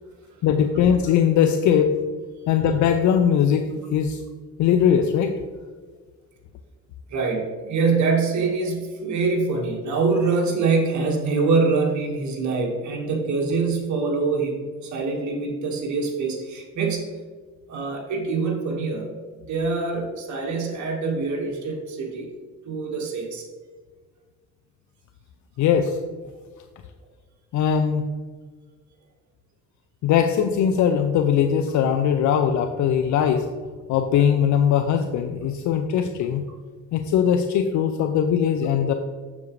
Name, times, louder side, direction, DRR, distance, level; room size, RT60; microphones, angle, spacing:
voice 1, 0.4-1.9 2.5-4.2 4.6-5.4 25.6-26.0 27.5-28.1 30.0-33.5 33.9-36.4 36.9-38.9, left 8 dB, 75° left, 7 dB, 0.5 m, -20 dB
voice 2, 7.1-17.1 17.7-19.1 19.5-22.3 22.6-23.4, right 4 dB, 70° right, 0 dB, 1.6 m, -24 dB
7.2 x 7.0 x 3.1 m, 1.5 s
cardioid pair, 90°, 30 cm